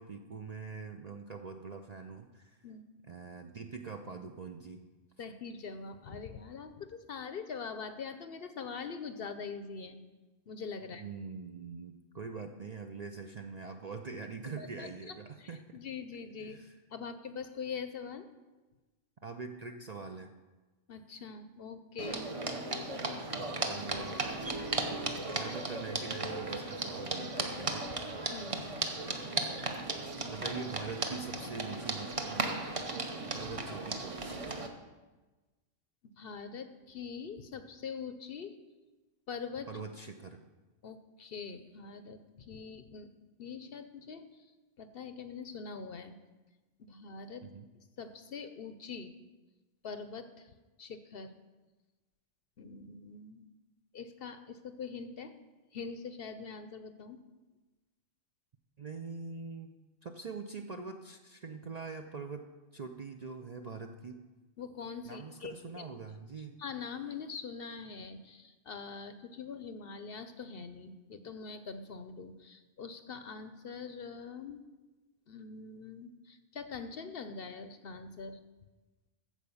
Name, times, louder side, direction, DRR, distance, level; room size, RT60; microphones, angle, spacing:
voice 1, 0.0-2.6 3.0-4.8 10.8-15.8 16.4-16.8 19.2-20.3 23.4-24.2 25.3-27.9 30.3-32.8 33.3-34.6 39.7-40.4 47.4-47.7 58.8-59.8 60.0-62.5 62.7-64.2 65.1-66.6, right 4 dB, 45° right, 5 dB, 0.5 m, -44 dB
voice 2, 5.2-10.0 10.5-11.0 14.6-16.6 16.9-18.3 20.9-22.3 28.3-28.6 36.2-38.6 39.3-39.7 40.8-43.1 43.4-44.3 44.8-46.2 46.9-47.5 48.0-49.1 49.8-50.5 50.8-51.3 52.6-53.5 53.9-55.3 55.7-57.2 64.6-65.9 66.6-74.6 75.3-78.4, left 5 dB, 55° left, 9 dB, 0.8 m, -43 dB
sound 1, 22.0-34.7, right 2 dB, 30° right, 0.9 m, -36 dB
14.5 x 4.9 x 7.0 m, 1.2 s
omnidirectional pair, 1.3 m